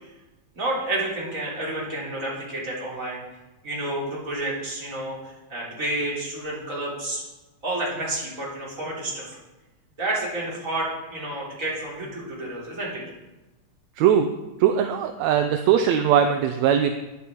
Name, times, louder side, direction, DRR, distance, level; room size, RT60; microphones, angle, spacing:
voice 1, 0.5-3.2 3.6-7.2 7.6-9.4 10.0-13.0, right 2 dB, 25° right, -5 dB, 3.8 m, -30 dB
voice 2, 14.6-16.9, right 9 dB, 75° right, 6 dB, 1.9 m, -20 dB
11.0 x 10.5 x 4.5 m, 1.1 s
omnidirectional pair, 3.3 m